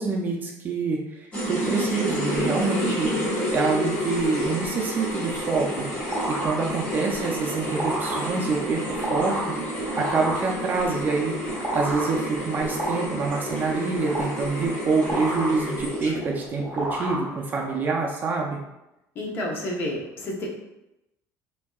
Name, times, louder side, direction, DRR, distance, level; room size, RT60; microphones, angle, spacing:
voice 1, 0.0-3.1 3.5-5.9 6.3-9.4 10.0-11.4 11.7-18.6, right 4 dB, 25° right, 0 dB, 0.4 m, -26 dB
sound 1, 1.3-16.4, equal, 15° left, 1.2 m, -30 dB
sound 2, 5.6-17.8, right 1 dB, 5° right, 0.9 m, -33 dB
voice 2, 19.2-20.5, left 1 dB, 35° left, -2 dB, 0.8 m, -30 dB
6.0 x 2.6 x 2.3 m, 0.90 s
cardioid pair, 170°, 7 cm